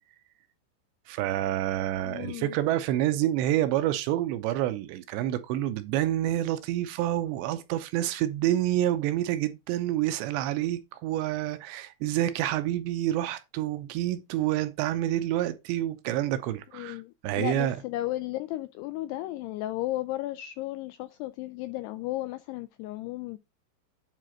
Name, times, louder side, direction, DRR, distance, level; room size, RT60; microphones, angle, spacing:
voice 1, 1.1-17.8, right 13 dB, 80° right, 2.7 m, -28 dB
voice 2, 2.0-2.6 16.7-23.4, left 16 dB, 85° left, 2.4 m, -34 dB
9.1 x 3.6 x 6.2 m
omnidirectional pair, 5.3 m